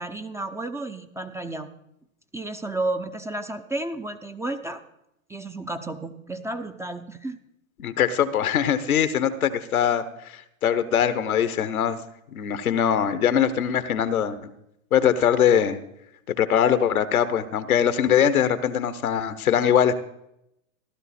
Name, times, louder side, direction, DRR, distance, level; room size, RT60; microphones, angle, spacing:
voice 1, 0.0-1.7 2.3-4.8 5.3-7.4, right 2 dB, 5° right, 8 dB, 0.6 m, -32 dB
voice 2, 7.8-12.0 12.3-14.5 14.9-15.8 16.4-19.9, left 9 dB, 80° left, 13 dB, 1.1 m, -22 dB
15.0 x 12.0 x 4.2 m, 0.82 s
hypercardioid pair, 100°, 42 cm